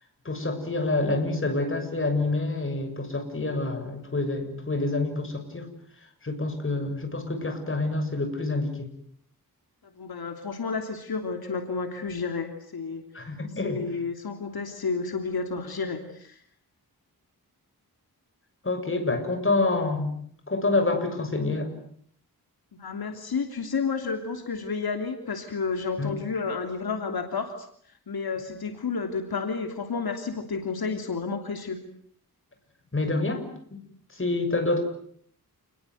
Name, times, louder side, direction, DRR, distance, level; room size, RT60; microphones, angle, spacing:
voice 1, 0.3-5.7 6.2-8.9 13.1-13.8 18.6-20.2 20.5-21.7 26.0-26.1 32.9-33.4 33.7-33.8 34.2-34.8, left 2 dB, 35° left, 6 dB, 6.9 m, -27 dB
voice 2, 9.8-13.0 13.6-16.4 22.7-27.7 28.1-31.8, left 5 dB, 75° left, 5 dB, 3.3 m, -31 dB
29.0 x 21.0 x 9.5 m, 0.64 s
wide cardioid pair, 115°, 37 cm